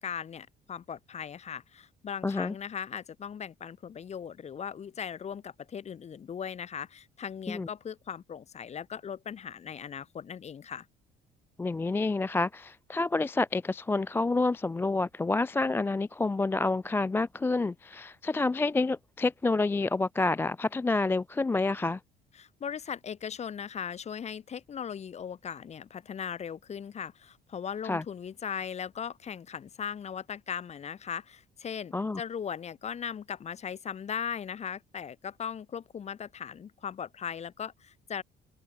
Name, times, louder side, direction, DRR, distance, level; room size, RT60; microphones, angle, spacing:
voice 1, 0.0-10.9 22.4-38.2, left 7 dB, 40° left, 2.1 m, -38 dB
voice 2, 2.2-2.5 7.5-7.7 11.6-22.0 27.8-28.0 31.9-32.2, left 3 dB, 15° left, 0.4 m, -28 dB
cardioid pair, 110°, 17 cm